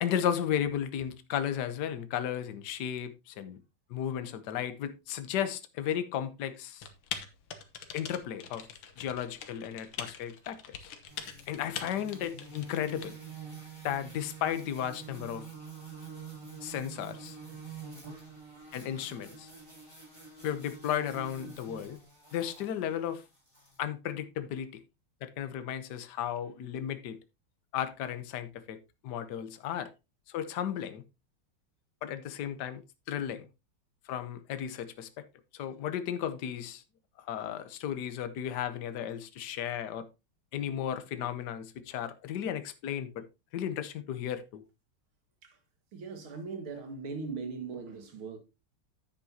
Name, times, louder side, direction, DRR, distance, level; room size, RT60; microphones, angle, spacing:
voice 1, 0.0-3.6 3.9-6.9 7.9-8.7 9.0-10.9 11.5-13.1 13.8-15.4 16.6-17.4 18.7-19.5 20.4-22.0 22.3-23.2 23.8-24.8 25.2-27.2 27.7-29.9 30.3-31.0 32.0-32.8 33.1-33.5 34.1-35.1 35.5-36.8 37.2-40.1 40.5-43.2 43.5-44.6, left 9 dB, 60° left, 1.4 m, -34 dB
Typing, 6.8-13.1, left 8 dB, 75° left, 2.0 m, -43 dB
sound 1, 11.1-23.8, right 5 dB, 15° right, 4.8 m, -47 dB
voice 2, 45.9-48.4, right 4 dB, 70° right, 2.6 m, -39 dB
10.0 x 8.3 x 2.8 m
omnidirectional pair, 2.4 m